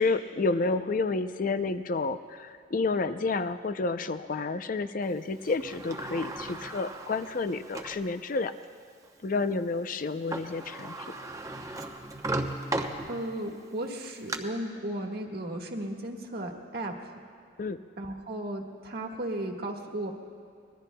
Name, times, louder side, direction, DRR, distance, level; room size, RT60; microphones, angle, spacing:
voice 1, 0.0-8.5 9.2-11.2 17.6-17.8, left 3 dB, 50° left, 11 dB, 0.5 m, -30 dB
Sliding door, 5.4-8.1 8.6-8.7 10.0-10.1 10.3-13.5 13.9-14.4, right 2 dB, 20° right, 0.8 m, -36 dB
voice 2, 13.1-17.2 18.0-20.1, right 1 dB, 60° right, 1 dB, 1.5 m, -35 dB
25.0 x 21.0 x 2.3 m, 2.4 s
head